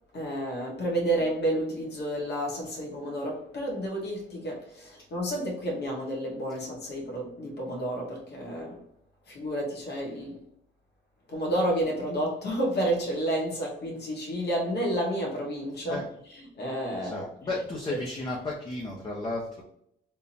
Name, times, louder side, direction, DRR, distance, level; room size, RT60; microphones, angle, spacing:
voice 1, 0.1-8.8 9.3-10.4 11.3-16.0 16.6-17.3, right 1 dB, 55° left, 1.4 m, -30 dB
voice 2, 16.9-19.6, left 2 dB, 25° left, 0.9 m, -33 dB
3.6 x 2.8 x 2.7 m
cardioid pair, 90°, 20 cm